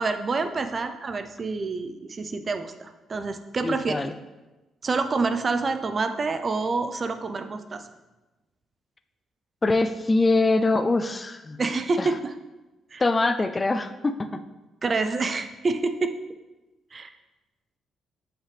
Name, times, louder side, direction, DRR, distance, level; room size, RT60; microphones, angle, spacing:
voice 1, 0.0-4.0 4.8-7.9 11.6-12.3 12.9-13.0 14.8-16.2 16.9-17.1, right 3 dB, 35° right, 9 dB, 0.6 m, -27 dB
voice 2, 3.6-4.1 9.6-11.6 12.0-12.1 13.0-14.4, left 2 dB, 25° left, 9 dB, 0.4 m, -23 dB
7.3 x 5.8 x 3.4 m, 1.1 s
cardioid pair, 90°, 0 cm